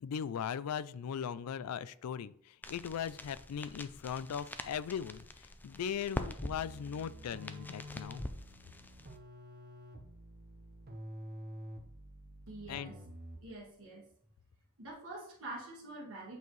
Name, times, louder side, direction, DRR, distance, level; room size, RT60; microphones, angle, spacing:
voice 1, 0.0-8.2 12.7-12.9, left 8 dB, 80° left, 17 dB, 0.4 m, -39 dB
sound 1, 2.6-9.2, left 1 dB, 10° left, 0.4 m, -45 dB
sound 2, 6.4-13.6, equal, 45° right, 0.9 m, -49 dB
voice 2, 12.5-13.0 13.4-14.0 14.8-16.4, right 2 dB, 65° right, -5 dB, 1.7 m, -46 dB
8.1 x 4.6 x 3.2 m, 0.62 s
head